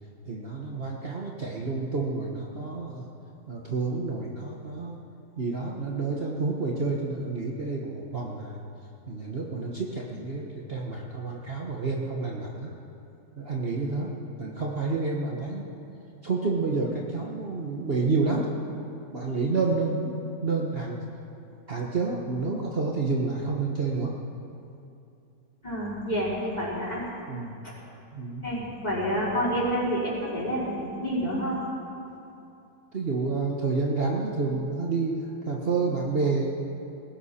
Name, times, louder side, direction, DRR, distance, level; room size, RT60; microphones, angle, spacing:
voice 1, 0.3-3.1 3.5-5.0 5.4-8.6 9.1-12.7 13.4-14.1 14.4-15.7 16.2-18.5 19.1-21.0 21.7-24.1 27.3-27.6 28.1-28.4 32.9-36.5, right 3 dB, 40° right, -2 dB, 1.3 m, -29 dB
voice 2, 25.6-27.0 27.6-27.7 28.4-31.6, equal, 25° left, -7 dB, 4.6 m, -28 dB
20.0 x 16.5 x 4.3 m, 2.7 s
omnidirectional pair, 1.6 m